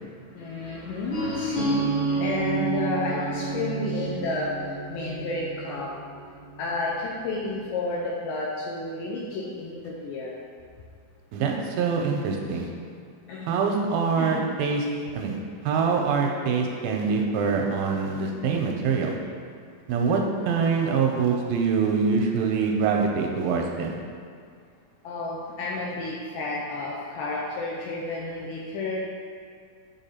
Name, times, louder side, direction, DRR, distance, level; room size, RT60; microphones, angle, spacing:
voice 1, 0.3-5.9 6.6-10.3 13.3-13.5 14.2-14.4 25.0-29.0, left 2 dB, 80° left, -4 dB, 2.1 m, -31 dB
sound 1, 1.1-6.9, right 3 dB, 60° left, 2.5 m, -29 dB
voice 2, 11.3-12.7 13.5-14.9 15.1-15.4 15.7-19.2 19.9-24.0, right 5 dB, 80° right, 1 dB, 2.2 m, -24 dB
8.2 x 3.6 x 4.2 m, 2.2 s
omnidirectional pair, 4.4 m